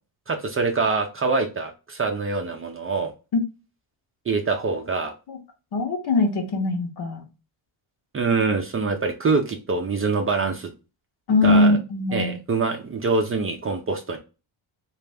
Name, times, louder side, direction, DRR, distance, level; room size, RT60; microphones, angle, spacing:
voice 1, 0.3-3.1 4.3-5.1 8.1-10.7 11.4-11.7 12.1-14.2, right 4 dB, 30° right, 3 dB, 0.5 m, -24 dB
voice 2, 5.7-7.2 11.3-12.4, left 2 dB, 50° left, 3 dB, 1.0 m, -21 dB
3.3 x 2.5 x 3.3 m, 0.30 s
cardioid pair, 140°, 48 cm